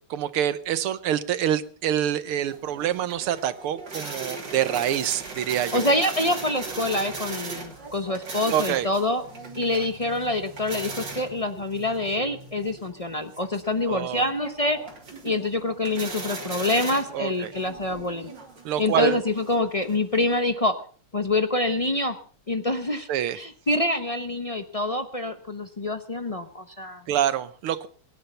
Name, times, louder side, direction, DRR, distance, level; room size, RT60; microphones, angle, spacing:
voice 1, 0.1-5.9 8.5-8.9 13.9-14.3 17.1-17.5 18.7-19.2 23.1-23.4 27.1-27.9, right 10 dB, 80° right, 14 dB, 1.8 m, -26 dB
sound 1, 2.5-20.4, right 3 dB, 55° right, 3.7 m, -39 dB
voice 2, 5.7-9.2 9.5-14.8 15.2-18.3 18.8-20.7 21.1-22.2 22.5-23.1 23.4-27.0, left 2 dB, 60° left, 8 dB, 0.3 m, -26 dB
23.5 x 10.5 x 5.5 m, 0.43 s
omnidirectional pair, 2.4 m